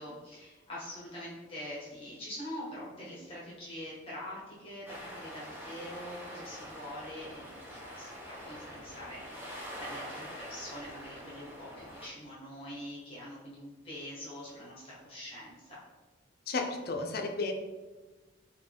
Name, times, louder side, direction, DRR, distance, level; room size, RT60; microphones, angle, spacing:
voice 1, 0.0-15.8, left 1 dB, 30° left, -7 dB, 1.1 m, -44 dB
sound 1, 4.9-12.1, equal, 10° right, 0.7 m, -45 dB
voice 2, 16.5-17.5, left 3 dB, 50° left, 4 dB, 0.5 m, -33 dB
5.5 x 2.2 x 3.4 m, 1.2 s
head